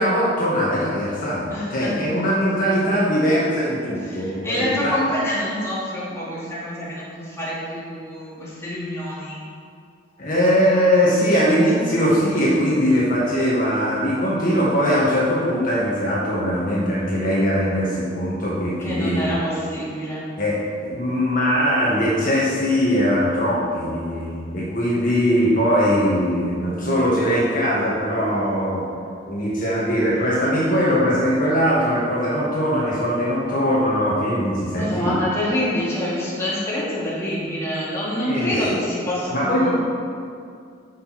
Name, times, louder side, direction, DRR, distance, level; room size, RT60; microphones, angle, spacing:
voice 1, 0.0-5.0 10.2-19.4 20.4-28.8 29.3-35.1 38.2-38.5 39.3-39.7, equal, 45° left, -7 dB, 1.8 m, -21 dB
voice 2, 1.5-1.9 4.1-9.4 18.8-20.2 34.7-39.7, left 1 dB, 15° left, -8 dB, 2.5 m, -26 dB
11.0 x 6.3 x 4.3 m, 2.3 s
head